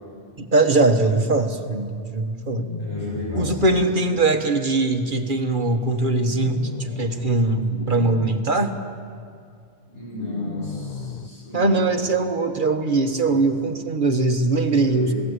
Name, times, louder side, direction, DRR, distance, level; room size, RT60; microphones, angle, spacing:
voice 1, 0.4-2.6 3.3-8.7 11.5-15.1, right 2 dB, 50° right, 6 dB, 1.6 m, -21 dB
sound 1, 2.4-3.8 6.2-7.3 7.6-8.3 10.1-11.3, left 5 dB, 45° left, 0.8 m, -34 dB
voice 2, 2.8-3.8 9.9-11.8 13.2-13.3 14.7-15.2, left 1 dB, 75° left, -5 dB, 8.4 m, -33 dB
28.0 x 18.0 x 8.2 m, 2.3 s
omnidirectional pair, 1.1 m